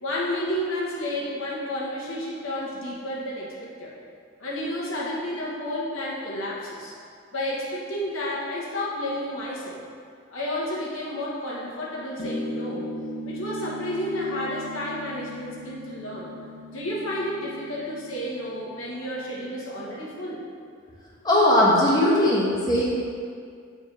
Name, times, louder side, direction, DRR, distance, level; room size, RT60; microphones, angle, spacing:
voice 1, 0.0-3.9 4.4-6.9 7.3-9.8 10.3-12.9 13.2-16.3 16.7-20.4, left 1 dB, 80° left, -5 dB, 1.3 m, -31 dB
sound 1, 12.2-19.1, left 1 dB, 60° left, 0.9 m, -38 dB
voice 2, 21.2-22.8, left 1 dB, 20° left, -7 dB, 1.2 m, -19 dB
7.5 x 4.7 x 3.3 m, 2.2 s
head